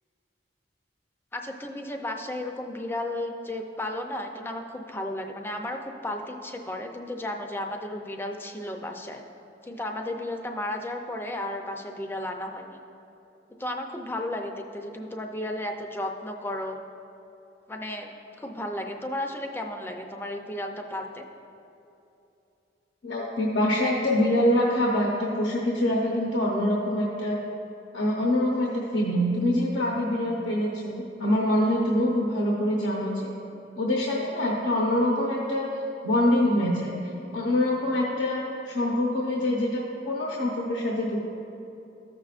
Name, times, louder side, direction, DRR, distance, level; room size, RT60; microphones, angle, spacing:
voice 1, 1.3-9.2 9.6-12.8 13.6-16.8 17.7-18.1 18.4-21.3, left 1 dB, 10° left, 3 dB, 0.5 m, -34 dB
voice 2, 23.0-27.4 27.9-33.3 33.8-35.7 36.0-36.9 37.3-41.2, left 1 dB, 85° left, -4 dB, 0.9 m, -25 dB
14.0 x 6.1 x 2.5 m, 2.8 s
head